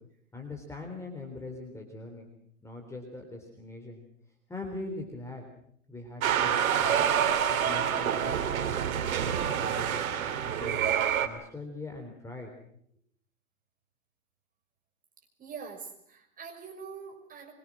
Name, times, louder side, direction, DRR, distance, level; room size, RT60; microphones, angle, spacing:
voice 1, 0.3-2.3 2.6-4.0 4.5-5.5 5.9-7.0 7.5-10.8 11.2-12.5, left 2 dB, 5° left, 2 dB, 3.7 m, -42 dB
sound 1, 6.2-11.3, right 9 dB, 65° right, 3.2 m, -27 dB
voice 2, 15.4-17.5, right 6 dB, 20° right, 2 dB, 5.8 m, -44 dB
25.0 x 23.0 x 6.1 m, 0.68 s
hypercardioid pair, 130°, 43 cm